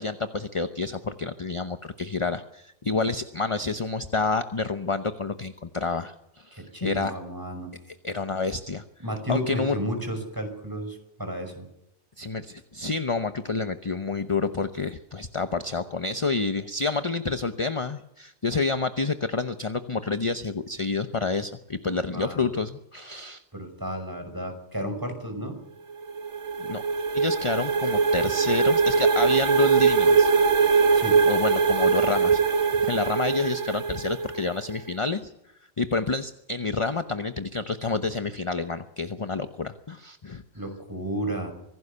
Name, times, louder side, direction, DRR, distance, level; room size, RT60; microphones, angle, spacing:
voice 1, 0.0-7.1 8.0-8.8 9.3-9.8 12.2-23.4 26.6-26.8 27.1-30.3 31.3-32.4 32.8-35.3 35.8-40.4, left 4 dB, 30° left, 9 dB, 0.9 m, -28 dB
voice 2, 6.5-7.7 9.0-11.7 21.8-22.5 23.5-25.6 30.9-31.2 40.5-41.5, right 1 dB, 15° right, 6 dB, 5.7 m, -33 dB
sound 1, 25.9-34.6, right 5 dB, 70° right, 1.9 m, -22 dB
25.5 x 17.0 x 6.9 m, 0.84 s
omnidirectional pair, 1.2 m